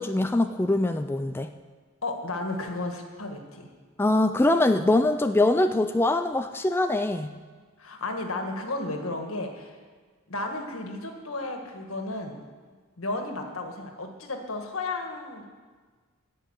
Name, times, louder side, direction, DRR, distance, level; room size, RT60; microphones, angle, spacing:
voice 1, 0.0-1.5 4.0-7.3, left 2 dB, 10° left, 7 dB, 0.3 m, -23 dB
voice 2, 2.0-3.7 7.8-9.8 10.3-12.4 13.0-15.4, left 2 dB, 75° left, 4 dB, 1.6 m, -33 dB
14.5 x 5.4 x 9.1 m, 1.5 s
head